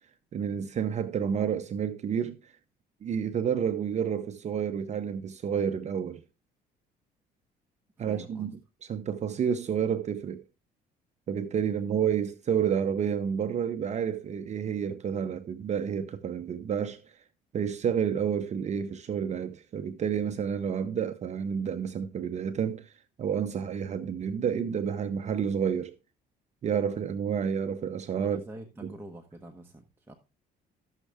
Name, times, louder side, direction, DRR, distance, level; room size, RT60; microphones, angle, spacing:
voice 1, 0.3-2.5 3.0-6.2 8.0-8.5 8.9-10.4 11.3-17.0 17.5-22.9 23.2-25.9 26.6-28.4 28.8-28.9, right 7 dB, 40° right, 0.7 m, -30 dB
voice 2, 8.0-8.5 28.1-30.1, right 1 dB, 15° right, 1.1 m, -46 dB
13.5 x 6.4 x 3.4 m
cardioid pair, 110°, 17 cm